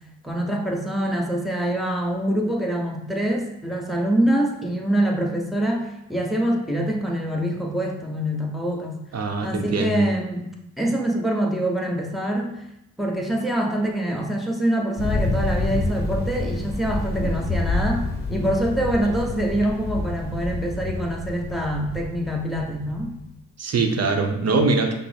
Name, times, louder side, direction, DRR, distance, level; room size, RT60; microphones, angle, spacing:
voice 1, 0.2-9.0 9.4-10.5 10.8-12.6 13.0-23.1, right 1 dB, ahead, -1 dB, 0.8 m, -25 dB
voice 2, 9.1-10.0 23.6-24.9, right 3 dB, 45° right, 4 dB, 0.7 m, -22 dB
Thunder, 15.0-23.2, left 3 dB, 30° left, 0.9 m, -28 dB
5.7 x 2.0 x 3.4 m, 0.86 s
supercardioid pair, 65°, 35 cm